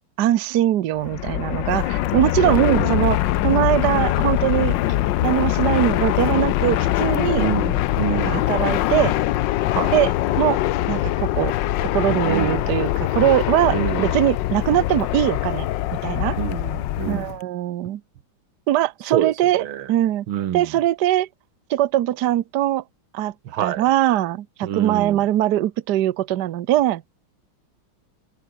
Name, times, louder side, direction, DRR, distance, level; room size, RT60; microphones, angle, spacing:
voice 1, 0.2-4.8 5.2-7.5 8.1-9.1 9.9-10.1 10.4-10.6 10.9-11.5 11.8-15.7 16.0-16.4 17.1-18.0 18.7-20.2 20.5-21.3 21.7-22.8 23.1-23.3 23.6-27.0, right 13 dB, 60° right, 1.3 m, -21 dB
Fixed-wing aircraft airplane, 1.0-17.4, left 14 dB, 70° left, 1.3 m, -22 dB
voice 2, 2.4-3.1 7.4-8.5 9.8-9.9 12.3-12.7 13.7-14.2 16.4-17.4 19.1-19.9 20.3-20.8 23.5-23.8 24.6-25.2, right 11 dB, 90° right, 2.0 m, -27 dB
open air
omnidirectional pair, 2.2 m